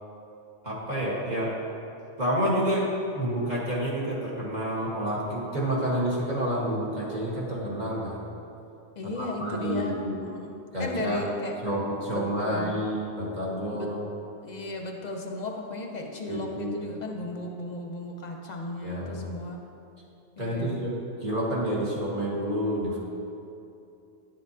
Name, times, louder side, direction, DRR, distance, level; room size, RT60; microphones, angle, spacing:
voice 1, 0.6-1.5 2.2-2.9 3.1-8.2 9.0-10.2 10.7-11.3 11.6-14.0 16.3-16.8 18.8-19.3 20.4-23.0, equal, 40° right, -6 dB, 1.5 m, -29 dB
voice 2, 9.0-11.5 12.1-12.8 13.7-13.9 14.4-19.6 20.4-20.8, left 2 dB, 45° left, 2 dB, 0.7 m, -35 dB
10.5 x 7.4 x 2.8 m, 2.7 s
omnidirectional pair, 1.2 m